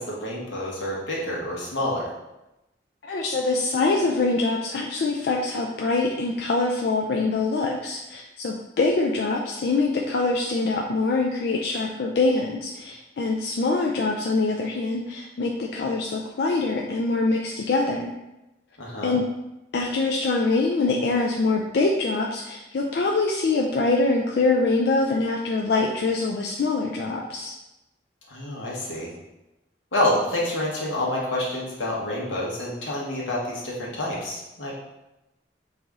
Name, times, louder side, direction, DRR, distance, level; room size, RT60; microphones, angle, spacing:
voice 1, 0.0-2.1 18.8-19.2 28.3-29.1 29.9-34.7, left 1 dB, 90° left, -4 dB, 1.3 m, -28 dB
voice 2, 3.0-18.1 19.0-19.2 19.7-27.5, left 3 dB, 60° left, 0 dB, 0.4 m, -24 dB
4.8 x 2.6 x 3.5 m, 0.97 s
head